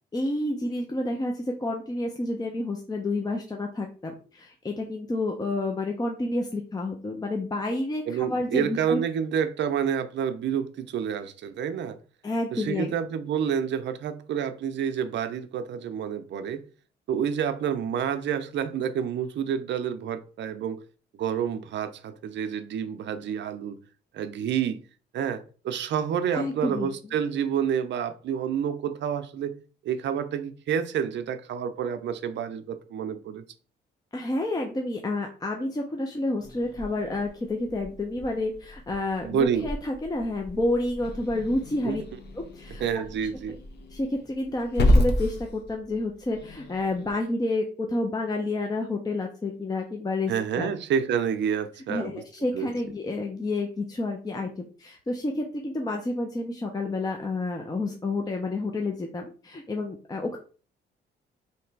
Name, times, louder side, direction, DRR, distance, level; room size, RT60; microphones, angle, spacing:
voice 1, 0.1-9.0 12.2-12.9 26.3-26.9 34.1-42.0 42.3-42.8 43.5-43.6 43.9-50.7 51.9-60.4, left 2 dB, 20° left, 0.6 m, -29 dB
voice 2, 8.1-12.0 12.5-16.6 17.1-20.8 21.1-23.8 24.1-24.8 25.1-29.5 29.8-33.4 39.2-39.7 41.9-42.0 42.8-43.6 50.3-52.1 52.5-52.7, right 8 dB, 65° right, 0.6 m, -28 dB
Growling / Hiss, 36.4-47.1, left 1 dB, 55° left, 1.0 m, -30 dB
3.2 x 2.9 x 4.6 m
cardioid pair, 90°, 20 cm